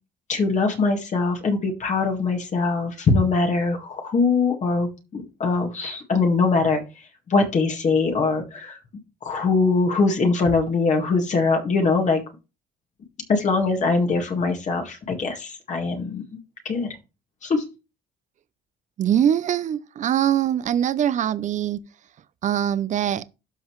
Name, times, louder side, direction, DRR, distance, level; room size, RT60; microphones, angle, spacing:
voice 1, 0.3-6.8 7.3-8.8 9.2-12.2 13.3-16.2 16.7-16.9 17.4-17.6, left 4 dB, 45° left, 1.9 m, -22 dB
voice 2, 19.0-21.8 22.4-23.2, right 10 dB, 45° right, 0.7 m, -22 dB
12.5 x 5.3 x 3.2 m
cardioid pair, 110°, 17 cm